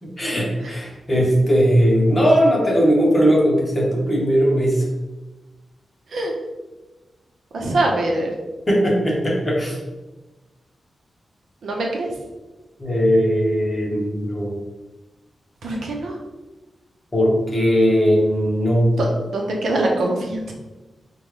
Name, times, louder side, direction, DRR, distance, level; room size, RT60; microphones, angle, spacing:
voice 1, 0.0-4.9 8.7-9.8 12.8-14.6 17.1-19.0, equal, 20° left, -3 dB, 0.9 m, -18 dB
voice 2, 7.5-8.3 11.6-12.1 15.6-16.2 19.0-20.5, right 2 dB, 80° right, 0 dB, 0.6 m, -23 dB
5.3 x 2.2 x 3.2 m, 1.2 s
wide cardioid pair, 150°, 0 cm